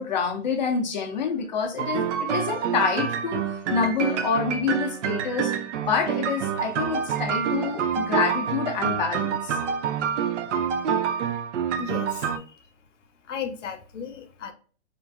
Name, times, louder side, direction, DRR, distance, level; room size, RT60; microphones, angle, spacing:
voice 1, 0.0-5.5 5.8-9.6, left 5 dB, 40° left, 0.5 m, -27 dB
sound 1, 1.8-12.4, right 7 dB, 75° right, 0.5 m, -27 dB
Wind chime, 7.1-8.5, right 1 dB, 15° right, 0.8 m, -44 dB
voice 2, 11.8-12.6 13.3-14.5, left 6 dB, 80° left, 0.7 m, -35 dB
3.0 x 2.5 x 2.4 m
hypercardioid pair, 170°, 36 cm